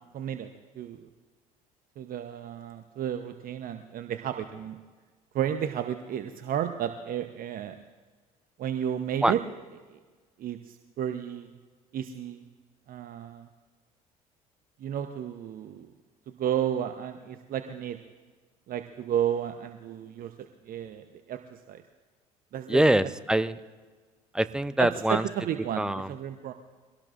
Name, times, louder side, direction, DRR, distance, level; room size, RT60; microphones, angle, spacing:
voice 1, 0.1-1.1 2.0-4.8 5.3-7.8 8.6-9.4 9.9-10.0 10.4-11.5 11.9-12.5 12.9-13.5 14.8-15.9 16.3-18.0 18.7-21.8 22.5-22.8 24.8-26.5, right 10 dB, 50° right, 8 dB, 0.9 m, -32 dB
voice 2, 22.7-23.6 24.3-25.3 25.8-26.1, right 1 dB, 5° right, 13 dB, 0.7 m, -24 dB
24.0 x 18.0 x 2.5 m, 1.4 s
hypercardioid pair, 60°, 19 cm